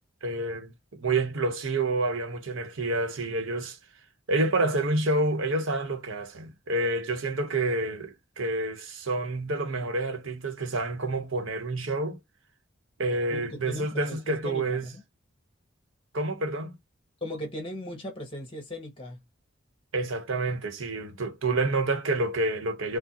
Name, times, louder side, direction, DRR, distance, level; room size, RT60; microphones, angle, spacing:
voice 1, 0.2-3.8 4.3-12.2 13.0-14.9 16.1-16.8 19.9-23.0, right 2 dB, 80° right, 1.1 m, -28 dB
voice 2, 13.3-15.0 17.2-19.2, left 1 dB, 25° left, 1.5 m, -38 dB
4.6 x 2.2 x 2.9 m
head